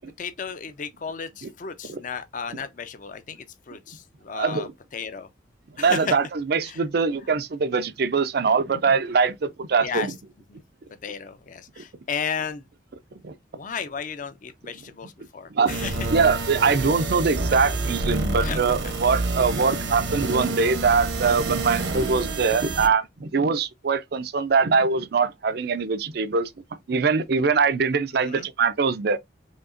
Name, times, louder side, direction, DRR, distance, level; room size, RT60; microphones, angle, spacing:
voice 1, 0.2-5.3 5.8-6.1 6.6-6.8 9.8-10.1 10.5-10.6 11.0-12.6 13.5-16.0 18.4-18.6 18.8-18.9 28.2-28.5, left 6 dB, 45° left, 0.5 m, -34 dB
voice 2, 4.3-4.7 5.8-10.1 11.8-11.9 13.2-13.3 15.5-15.8 16.1-26.5 26.9-29.2, right 5 dB, 55° right, 0.5 m, -23 dB
sound 1, 15.7-22.9, right 2 dB, 75° right, 0.9 m, -28 dB
5.1 x 2.8 x 2.5 m
head